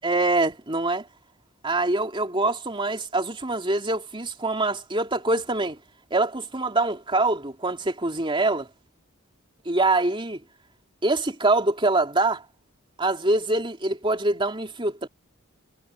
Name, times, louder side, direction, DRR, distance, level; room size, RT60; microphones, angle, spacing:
voice 1, 0.0-1.1 1.6-5.8 6.1-8.7 9.6-10.4 11.0-12.4 13.0-15.1, right 2 dB, 25° right, 3.2 m, -24 dB
head